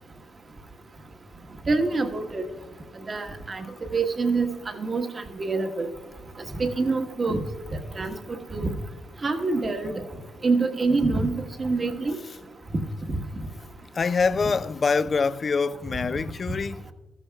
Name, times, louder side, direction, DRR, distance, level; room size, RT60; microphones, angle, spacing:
voice 1, 1.7-2.4 3.1-3.7 3.9-5.9 6.6-7.4 7.9-8.1 8.5-8.7 9.2-9.9 10.4-11.3 11.6-12.2 13.1-13.2, right 3 dB, 35° right, 1.2 m, -25 dB
voice 2, 13.9-16.9, left 5 dB, 40° left, 0.3 m, -25 dB
14.0 x 13.5 x 2.3 m
cardioid pair, 90°, 0 cm